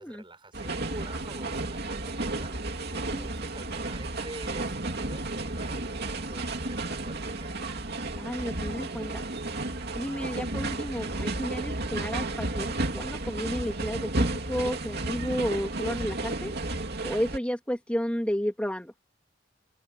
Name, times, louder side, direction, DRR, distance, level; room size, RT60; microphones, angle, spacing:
voice 1, 0.0-2.7 2.9-7.7, right 2 dB, 25° right, 6.1 m, -47 dB
sound 1, 0.5-17.4, right 2 dB, 55° right, 2.8 m, -32 dB
voice 2, 8.1-9.2 9.9-16.5 17.0-18.9, equal, 5° left, 2.7 m, -32 dB
head